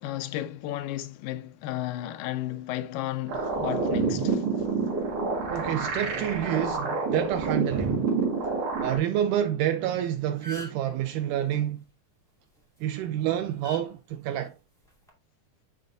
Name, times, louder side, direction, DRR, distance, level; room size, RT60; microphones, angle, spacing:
voice 1, 0.0-4.4, left 14 dB, 80° left, 2.1 m, -33 dB
sound 1, 3.3-9.0, right 4 dB, 50° right, 2.5 m, -28 dB
voice 2, 5.5-8.1 8.8-11.8 12.8-14.6, right 11 dB, 85° right, 1.8 m, -28 dB
sound 2, 9.9-10.0 10.2-10.9 12.6-12.8 13.6-13.8 14.8-15.1, right 1 dB, ahead, 1.5 m, -41 dB
11.0 x 3.9 x 2.6 m
omnidirectional pair, 4.1 m